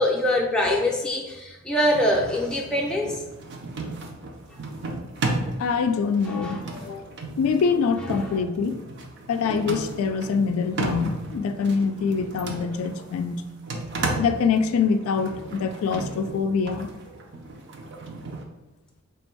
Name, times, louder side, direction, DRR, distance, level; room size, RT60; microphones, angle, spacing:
voice 1, 0.0-3.2 6.3-6.6 8.1-8.4, left 1 dB, 5° left, -2 dB, 0.5 m, -24 dB
sound 1, 1.8-18.4, right 2 dB, 55° right, 0.5 m, -34 dB
voice 2, 5.6-7.1 7.4-8.8 9.3-13.4 13.7-13.8 14.2-16.9, left 5 dB, 75° left, 10 dB, 0.3 m, -24 dB
3.4 x 2.6 x 4.4 m, 1.1 s
head